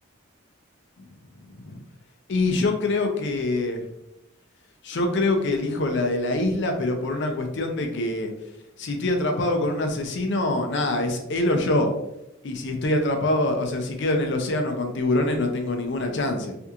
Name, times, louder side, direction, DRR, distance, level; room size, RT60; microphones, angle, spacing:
voice 1, 1.5-1.8 2.3-3.8 4.8-8.3 8.8-11.9 12.4-16.5, left 2 dB, 55° left, 5 dB, 0.5 m, -24 dB
3.4 x 2.8 x 2.4 m, 0.85 s
head